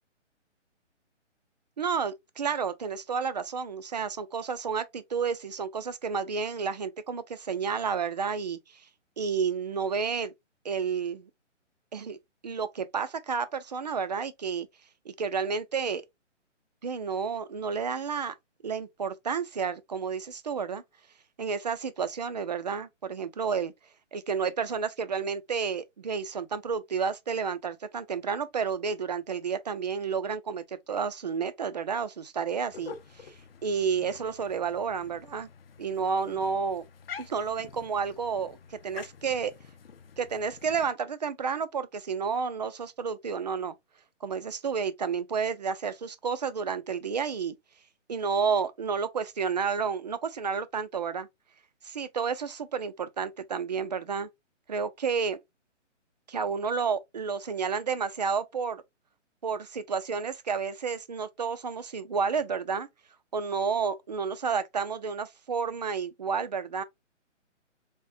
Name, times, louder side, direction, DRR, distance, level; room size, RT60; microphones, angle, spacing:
voice 1, 1.8-8.6 9.2-10.3 10.6-11.3 11.9-12.2 12.4-14.7 15.1-16.0 16.8-18.3 18.6-20.8 21.4-23.7 24.1-32.9 33.2-33.3 33.6-35.5 35.8-36.8 37.2-38.6 38.8-39.5 40.2-43.7 44.2-47.5 48.1-51.3 51.8-54.3 54.7-55.4 56.3-58.8 59.4-62.9 63.3-66.8, right 6 dB, 35° right, 0.4 m, -31 dB
sound 1, 32.7-40.9, left 6 dB, 50° left, 0.7 m, -47 dB
3.5 x 3.4 x 2.5 m
hypercardioid pair, 155°, 37 cm